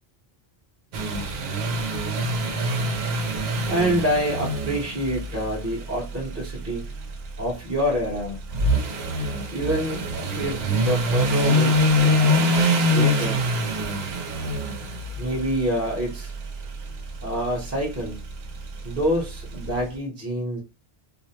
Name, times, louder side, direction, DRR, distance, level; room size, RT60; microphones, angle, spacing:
sound 1, 0.9-19.8, equal, 80° right, 0.8 m, -25 dB
voice 1, 3.7-6.8 7.4-8.4 9.5-10.0 10.4-13.4 15.2-16.3 17.2-18.2 18.8-20.6, equal, 15° right, 0.6 m, -27 dB
2.4 x 2.0 x 2.7 m
omnidirectional pair, 1.0 m